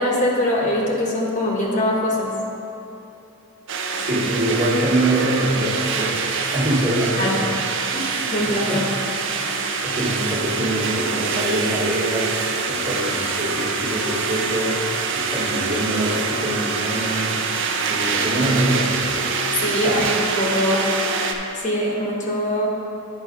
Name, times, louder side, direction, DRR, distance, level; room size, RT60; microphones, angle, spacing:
voice 1, 0.0-2.3 7.2-7.4 7.9-8.9 19.6-20.9 21.5-22.7, left 1 dB, 35° left, -2 dB, 1.0 m, -22 dB
sound 1, 3.7-21.3, right 4 dB, 55° right, 0.6 m, -25 dB
voice 2, 4.0-7.5 8.3-8.8 9.4-12.4 12.7-14.9 15.1-17.4 17.9-19.3 19.7-20.1, right 1 dB, 35° right, -6 dB, 1.4 m, -24 dB
9.5 x 4.8 x 5.0 m, 3.0 s
head